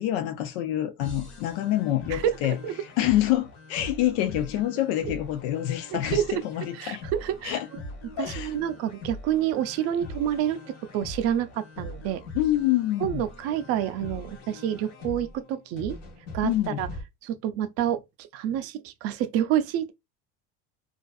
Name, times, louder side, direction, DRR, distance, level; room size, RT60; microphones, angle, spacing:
voice 1, 0.0-7.0 7.4-7.7 8.2-8.5 12.3-13.2 16.4-16.8, left 13 dB, 80° left, 0.5 m, -27 dB
sound 1, 1.0-17.0, left 2 dB, 50° left, 1.2 m, -41 dB
voice 2, 2.1-2.7 5.0-5.1 5.9-6.4 6.8-7.6 8.2-12.2 13.0-16.0 16.3-16.9 17.2-19.9, right 10 dB, 50° right, 0.4 m, -28 dB
2.5 x 2.4 x 2.3 m
supercardioid pair, 135°, 32 cm